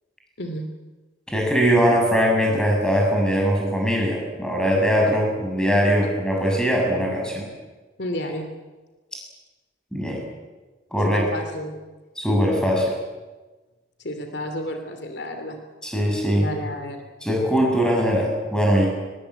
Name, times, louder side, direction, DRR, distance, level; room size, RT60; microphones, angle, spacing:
voice 1, 1.3-7.5 9.9-10.2 10.9-11.2 12.2-12.9 15.8-16.5 17.2-18.9, equal, 5° left, 0 dB, 7.1 m, -21 dB
voice 2, 8.0-8.5 11.0-11.8 14.0-15.6 16.3-17.0, left 1 dB, 65° left, 6 dB, 2.7 m, -31 dB
23.0 x 21.0 x 8.9 m, 1.2 s
head